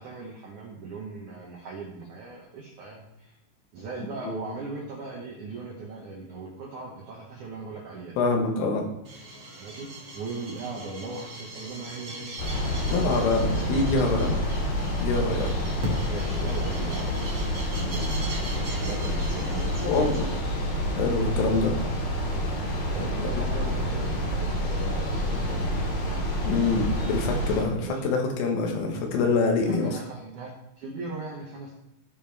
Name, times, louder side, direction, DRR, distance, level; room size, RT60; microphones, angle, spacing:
voice 1, 0.0-3.4 3.7-8.2 9.6-13.9 14.3-14.4 16.0-20.2 21.4-21.7 22.9-25.8 27.8-28.1 29.6-31.8, right 3 dB, 75° right, -2 dB, 1.7 m, -39 dB
voice 2, 8.2-8.9 12.9-14.3 15.0-15.5 19.8-20.3 21.0-21.7 23.0-23.1 26.5-30.0, left 3 dB, 85° left, 2 dB, 3.9 m, -25 dB
sound 1, 9.0-20.4, right 1 dB, 45° right, 1.5 m, -40 dB
sound 2, 12.4-27.6, equal, 60° left, 4.0 m, -28 dB
15.5 x 5.4 x 3.4 m, 0.83 s
omnidirectional pair, 5.5 m